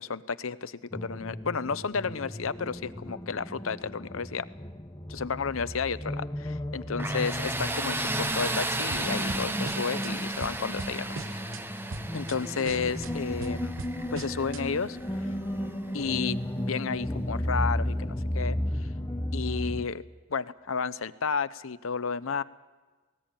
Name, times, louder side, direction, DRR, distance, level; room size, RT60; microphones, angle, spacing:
voice 1, 0.0-4.5 5.1-11.5 12.1-13.8 14.1-15.0 15.9-16.4 16.7-18.9 19.3-20.0 20.3-22.4, left 5 dB, 80° left, 15 dB, 0.8 m, -32 dB
sound 1, 0.9-19.9, left 1 dB, 15° left, 0.9 m, -34 dB
Tools, 7.0-15.7, right 2 dB, 10° right, 0.7 m, -35 dB
sound 2, 8.9-10.1 10.4-11.6 11.9-12.4 12.6-14.6, right 3 dB, 80° right, 1.0 m, -40 dB
19.5 x 18.5 x 8.9 m, 1.3 s
head